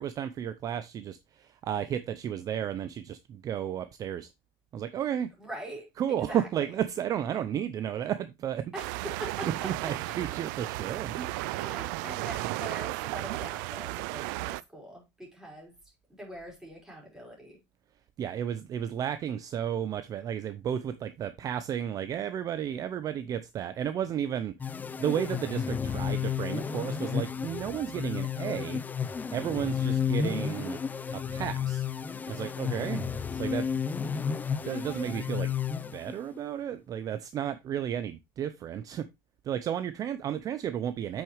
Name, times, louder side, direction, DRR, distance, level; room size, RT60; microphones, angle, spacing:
voice 1, 0.0-4.3 4.7-5.3 6.0-8.7 9.6-11.7 18.2-28.8 29.3-30.8 31.1-31.9 32.3-33.1 33.4-33.7 34.6-35.5 35.9-39.1 39.4-41.2, right 9 dB, 35° right, 0.6 m, -33 dB
voice 2, 5.4-6.5 8.7-9.7 11.5-15.7 16.1-17.6 32.6-33.1, right 1 dB, 5° right, 4.6 m, -43 dB
sound 1, 8.7-14.6, right 20 dB, 80° right, 0.4 m, -34 dB
sound 2, 24.6-36.4, left 7 dB, 15° left, 0.5 m, -32 dB
8.3 x 6.3 x 3.1 m
cardioid pair, 140°, 10 cm